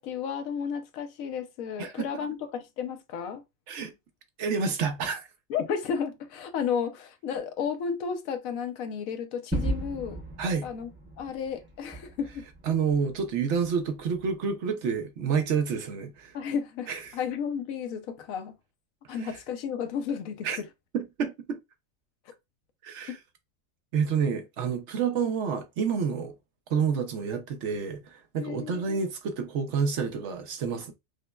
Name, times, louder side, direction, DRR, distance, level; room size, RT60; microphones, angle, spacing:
voice 1, 0.0-3.4 5.5-10.2 10.6-10.9 11.2-12.4 16.3-18.5 19.1-20.5 23.1-23.2 28.4-29.0, left 7 dB, 85° left, 1.1 m, -33 dB
voice 2, 1.8-2.2 3.7-3.9 4.4-5.3 10.4-10.7 12.7-16.4 16.9-17.2 19.1-19.4 20.4-20.6 20.9-21.6 22.8-23.2 23.9-26.3 26.7-30.9, right 6 dB, 65° right, 0.8 m, -29 dB
Gunshot gunfire / Fireworks / Boom, 9.5-14.3, right 1 dB, 15° right, 0.4 m, -36 dB
5.0 x 2.1 x 2.2 m
omnidirectional pair, 1.4 m